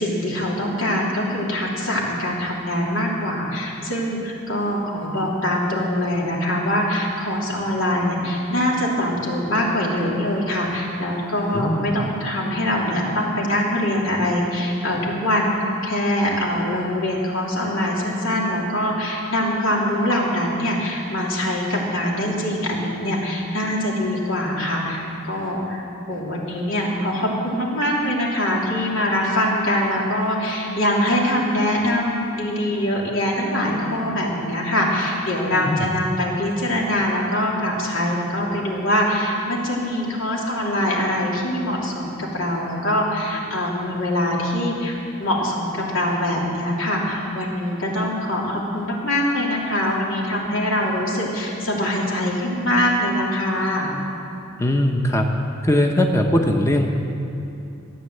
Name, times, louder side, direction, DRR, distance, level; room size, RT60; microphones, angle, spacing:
voice 1, 0.0-15.6 15.8-25.8 26.1-53.9, left 1 dB, 90° left, -3 dB, 3.0 m, -23 dB
voice 2, 11.5-11.9 35.7-35.9 54.6-55.3 55.6-56.9, left 1 dB, 15° left, 3 dB, 0.8 m, -20 dB
14.5 x 9.1 x 7.8 m, 2.8 s
head